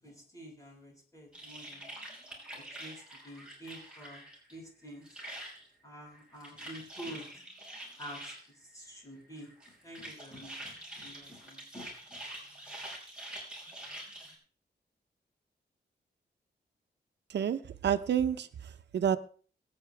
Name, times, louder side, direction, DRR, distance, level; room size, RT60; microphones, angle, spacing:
voice 1, 0.0-1.9 2.5-4.2 4.5-5.1 5.8-7.2 8.0-12.2, equal, 20° left, -2 dB, 6.7 m, -48 dB
sound 1, 1.3-4.5 4.8-5.7 6.1-8.5 9.4-14.3, right 1 dB, 5° right, 5.6 m, -46 dB
voice 2, 17.3-19.2, right 8 dB, 90° right, 10 dB, 0.9 m, -30 dB
24.0 x 8.8 x 3.5 m, 0.43 s
wide cardioid pair, 140°, 17 cm